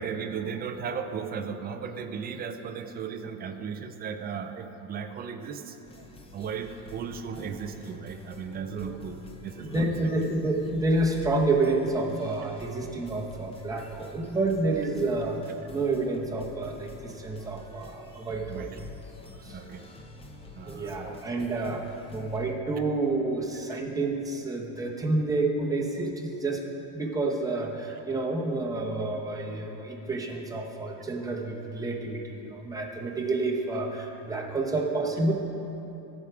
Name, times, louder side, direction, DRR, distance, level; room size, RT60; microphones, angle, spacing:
voice 1, 0.0-6.1 6.3-9.2 9.4-10.2 12.6-12.7 17.4-17.5 18.5-18.8 19.5-19.9 20.5-21.3 23.7-23.8, right 6 dB, 25° right, 7 dB, 0.3 m, -36 dB
sound 1, 5.9-22.5, left 2 dB, 15° left, 0.6 m, -47 dB
voice 2, 9.6-18.8 19.4-19.6 20.6-26.6 26.9-35.3, right 2 dB, 10° right, -1 dB, 0.9 m, -29 dB
14.5 x 4.8 x 6.0 m, 3.0 s
cardioid pair, 145°, 41 cm